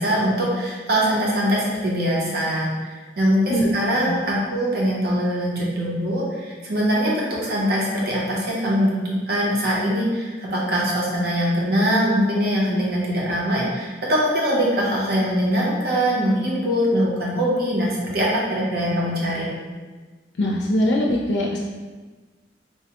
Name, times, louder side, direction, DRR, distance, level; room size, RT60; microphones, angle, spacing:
voice 1, 0.0-19.5, equal, 55° right, -5 dB, 0.8 m, -22 dB
voice 2, 20.4-21.6, left 1 dB, 70° left, -2 dB, 0.4 m, -21 dB
4.5 x 2.1 x 2.9 m, 1.3 s
head